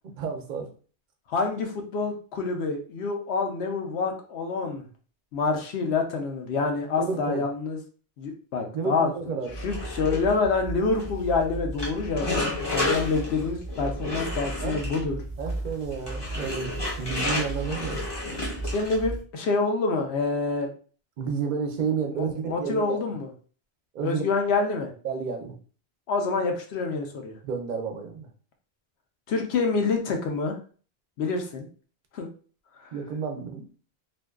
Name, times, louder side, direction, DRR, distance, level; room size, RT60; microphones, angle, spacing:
voice 1, 0.2-0.7 7.0-7.4 8.7-9.6 14.6-14.8 15.4-18.0 21.2-23.1 23.9-24.3 25.0-25.5 27.4-28.3 32.9-33.7, right 5 dB, 55° right, 3 dB, 0.6 m, -31 dB
voice 2, 1.3-4.8 5.3-7.8 8.2-9.1 9.6-15.2 18.7-20.7 22.4-23.3 24.0-24.9 26.1-27.4 29.3-30.5 31.2-31.7 32.1-32.3 32.8-32.9, left 4 dB, 75° left, 3 dB, 0.8 m, -27 dB
sound 1, 9.5-19.2, left 1 dB, 30° left, 0.7 m, -31 dB
2.5 x 2.2 x 2.3 m, 0.40 s
omnidirectional pair, 1.1 m